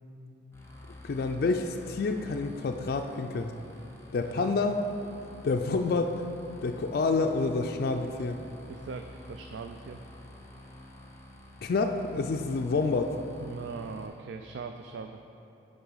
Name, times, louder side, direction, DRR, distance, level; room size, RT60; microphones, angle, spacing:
sound 1, 0.5-14.1, left 1 dB, 15° left, 0.8 m, -49 dB
voice 1, 1.0-3.5 4.1-4.8 5.4-6.2 6.6-8.4 11.6-13.2, left 3 dB, 55° left, 4 dB, 0.3 m, -28 dB
voice 2, 8.7-10.0 13.4-15.2, right 5 dB, 70° right, 5 dB, 0.3 m, -40 dB
10.5 x 3.8 x 5.5 m, 2.7 s
head